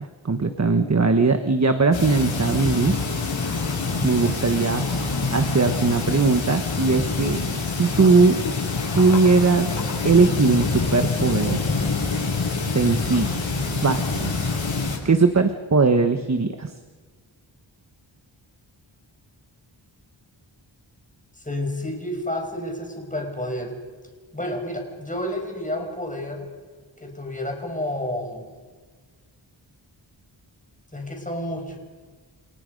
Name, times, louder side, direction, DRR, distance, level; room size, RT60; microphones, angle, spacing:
voice 1, 0.0-3.0 4.0-4.8 5.3-7.4 7.7-8.4 8.9-11.6 12.7-13.3 13.6-14.3 15.0-16.7, right 4 dB, 35° right, 7 dB, 1.3 m, -20 dB
sound 1, 1.9-15.0, left 4 dB, 75° left, 6.8 m, -26 dB
voice 2, 21.4-23.7 24.3-26.5 27.0-28.4 30.9-31.8, left 1 dB, 15° left, 2 dB, 5.7 m, -30 dB
29.0 x 29.0 x 5.4 m, 1.4 s
wide cardioid pair, 120°, 46 cm